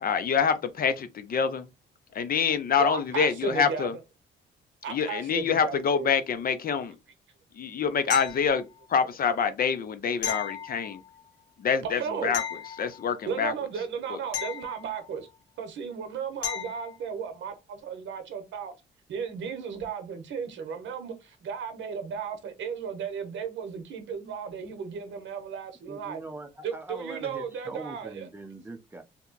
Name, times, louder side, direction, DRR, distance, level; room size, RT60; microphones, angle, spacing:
voice 1, 0.0-1.7 2.1-3.9 4.9-7.0 7.5-11.0 11.6-12.4 12.8-13.5 14.1-14.2, left 6 dB, 45° left, 0.5 m, -26 dB
voice 2, 2.8-3.9 4.8-6.1 11.8-12.4 13.3-15.3 15.6-18.7 19.1-26.2 26.6-28.3, right 6 dB, 70° right, 0.9 m, -35 dB
sound 1, 8.1-8.9 10.2-11.3 12.3-13.4 14.3-15.4 16.4-17.0 19.8-19.9, left 9 dB, 75° left, 1.3 m, -36 dB
voice 3, 25.9-29.0, right 3 dB, 10° right, 0.7 m, -41 dB
2.8 x 2.2 x 3.8 m
cardioid pair, 90°, 20 cm